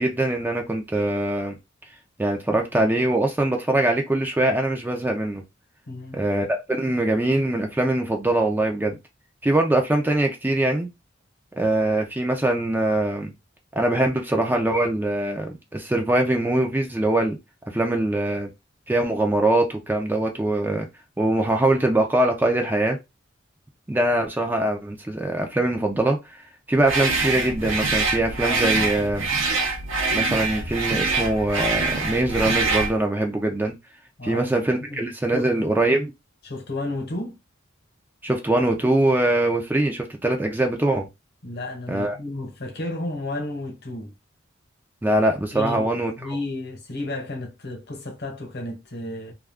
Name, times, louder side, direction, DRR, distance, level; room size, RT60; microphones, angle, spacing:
voice 1, 0.0-1.6 2.2-5.4 6.1-9.0 9.4-10.9 11.6-13.3 13.7-17.4 17.7-18.5 18.9-20.9 21.2-23.0 23.9-26.4 26.7-29.2 30.1-33.7 34.2-36.1 38.2-41.1 41.9-42.2 45.0-46.4, right 1 dB, 10° right, 0.4 m, -22 dB
voice 2, 5.9-6.3 34.2-34.5 34.9-35.0 35.3-35.7 36.4-37.4 41.4-44.1 45.5-45.9 46.2-49.3, left 2 dB, 55° left, 1.0 m, -32 dB
sound 1, 26.8-33.0, right 3 dB, 80° right, 0.7 m, -24 dB
2.3 x 2.3 x 3.4 m
head